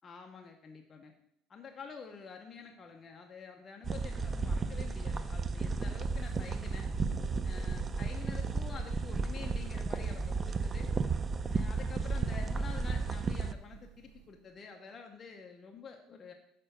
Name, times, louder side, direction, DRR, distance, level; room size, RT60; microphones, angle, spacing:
voice 1, 0.0-1.1 1.5-6.9 7.4-10.9 11.4-16.3, left 5 dB, 25° left, 3 dB, 0.7 m, -48 dB
sound 1, 3.8-13.5, right 4 dB, 20° right, 0.4 m, -33 dB
Thunder, 6.0-14.4, right 7 dB, 80° right, 0.5 m, -50 dB
6.6 x 4.5 x 6.6 m, 0.76 s
cardioid pair, 160°, 0 cm